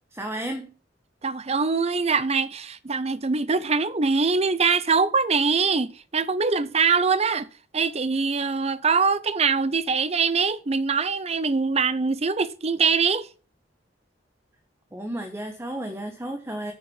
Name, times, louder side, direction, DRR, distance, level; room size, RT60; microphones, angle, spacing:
voice 1, 0.1-0.7 14.9-16.7, right 1 dB, 15° right, 1.2 m, -33 dB
voice 2, 1.2-7.5 7.7-13.3, right 5 dB, 35° right, 0.7 m, -23 dB
9.1 x 6.0 x 7.1 m
head